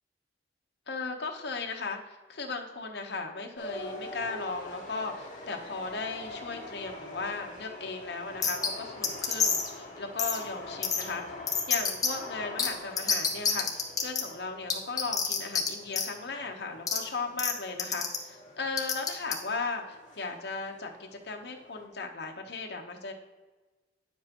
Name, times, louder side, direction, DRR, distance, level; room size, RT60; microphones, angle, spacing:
voice 1, 0.9-11.2 11.7-23.1, left 4 dB, 65° left, 2 dB, 1.0 m, -37 dB
sound 1, 3.5-21.9, left 2 dB, 40° left, 2.1 m, -45 dB
sound 2, 8.4-8.7 9.0-9.7 10.2-10.4 10.8-11.0 11.5-12.1 12.6-12.7 13.0-14.2 14.7-15.7 15.9-16.1 16.9-17.0 17.4-17.5 17.8-18.2 18.8-19.3, left 6 dB, 20° left, 0.9 m, -27 dB
9.6 x 7.4 x 3.0 m, 1.3 s
head